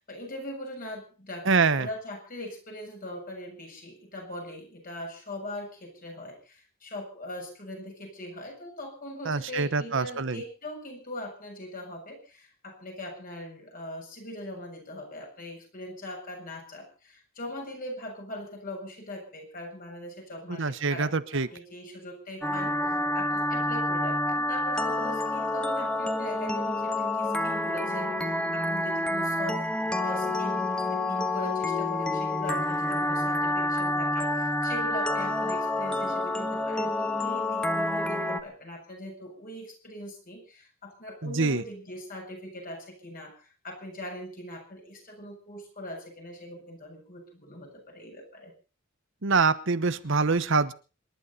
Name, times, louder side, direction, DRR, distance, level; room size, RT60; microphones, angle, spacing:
voice 1, 0.1-29.7 30.0-48.5, left 1 dB, 45° left, 2 dB, 7.3 m, -41 dB
voice 2, 1.5-1.9 9.3-10.4 20.6-21.5 41.2-41.6 49.2-50.7, right 4 dB, 65° right, 13 dB, 1.0 m, -25 dB
sound 1, 22.4-38.4, left 1 dB, 5° left, 1.5 m, -28 dB
27.0 x 11.5 x 4.2 m, 0.35 s
head